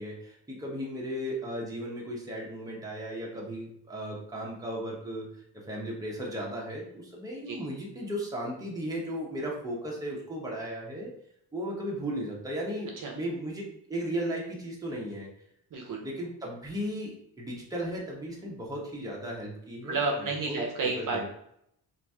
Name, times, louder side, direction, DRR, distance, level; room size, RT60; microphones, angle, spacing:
voice 1, 0.0-5.3 5.7-11.1 11.5-15.3 16.0-20.6 21.0-21.3, equal, 10° right, -3 dB, 0.9 m, -36 dB
voice 2, 15.7-16.0 19.8-21.3, right 3 dB, 55° right, 1 dB, 0.7 m, -31 dB
2.9 x 2.6 x 3.5 m, 0.73 s
wide cardioid pair, 125°, 40 cm